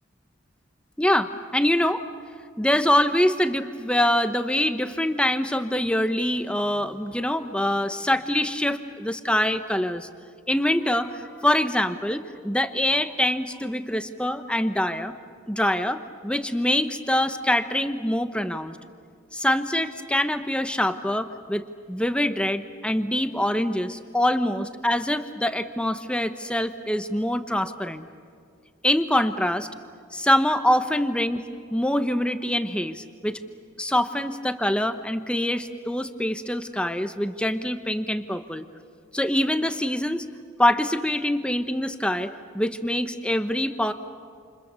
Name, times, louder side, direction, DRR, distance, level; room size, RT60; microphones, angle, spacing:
voice 1, 1.0-2.0 2.6-10.1 10.5-15.1 15.5-18.8 19.3-28.0 28.8-29.7 30.1-31.4 31.7-33.4 33.8-38.7 39.1-40.3 40.6-43.9, left 1 dB, 5° left, 9 dB, 0.9 m, -24 dB
29.0 x 28.5 x 7.0 m, 2.2 s
head